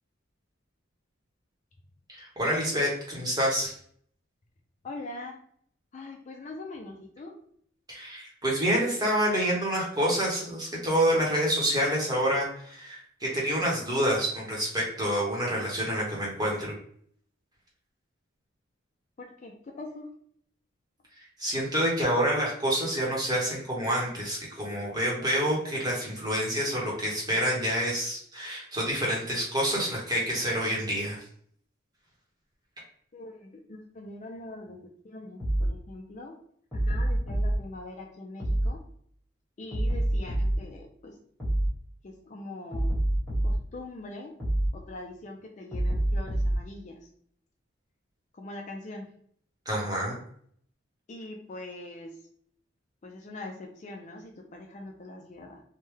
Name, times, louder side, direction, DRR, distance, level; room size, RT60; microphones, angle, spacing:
voice 1, 2.1-3.7 7.9-16.7 21.4-31.2 49.7-50.2, equal, 20° right, -4 dB, 0.9 m, -27 dB
voice 2, 4.8-5.4 5.9-7.4 19.2-20.1 33.1-34.8 35.0-36.4 36.8-38.8 39.6-41.1 42.0-43.0 43.4-44.4 44.7-47.1 48.3-49.1 51.1-52.2 53.0-55.6, left 2 dB, 35° left, 1 dB, 0.4 m, -42 dB
sound 1, 35.4-35.7 36.7-37.6 38.4-38.7 39.7-40.6 41.4-41.7 42.7-43.6 44.4-44.7 45.7-46.6, right 1 dB, ahead, 1.3 m, -26 dB
3.3 x 2.1 x 3.1 m, 0.62 s
head